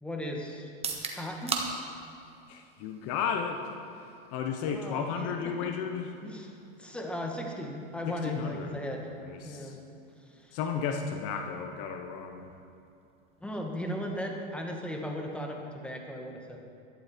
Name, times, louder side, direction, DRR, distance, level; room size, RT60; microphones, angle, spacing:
voice 1, 0.0-0.7 1.1-1.7 4.6-5.7 6.2-9.1 9.4-9.8 10.2-10.6 13.4-16.7, equal, 5° left, 1 dB, 1.8 m, -37 dB
sound 1, 0.7-14.5, right 4 dB, 20° right, 1.5 m, -44 dB
voice 2, 2.5-3.7 4.3-6.1 8.1-8.8 9.2-9.8 10.5-12.5, left 6 dB, 55° left, 5 dB, 1.1 m, -33 dB
13.0 x 12.0 x 4.6 m, 2.6 s
hypercardioid pair, 100°, 30 cm